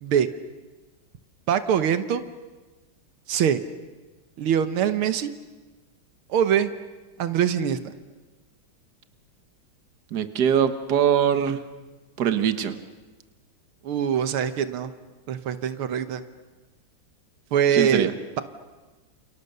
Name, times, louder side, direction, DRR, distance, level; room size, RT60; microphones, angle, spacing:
voice 1, 1.5-2.2 3.3-3.6 4.4-5.3 6.3-6.7 7.2-7.9 13.8-14.9 15.3-16.2 17.5-18.1, right 9 dB, 85° right, 11 dB, 1.9 m, -23 dB
voice 2, 10.1-11.6 12.2-12.8 17.7-18.1, right 8 dB, 55° right, 9 dB, 1.7 m, -22 dB
29.0 x 29.0 x 6.8 m, 1.2 s
omnidirectional pair, 2.3 m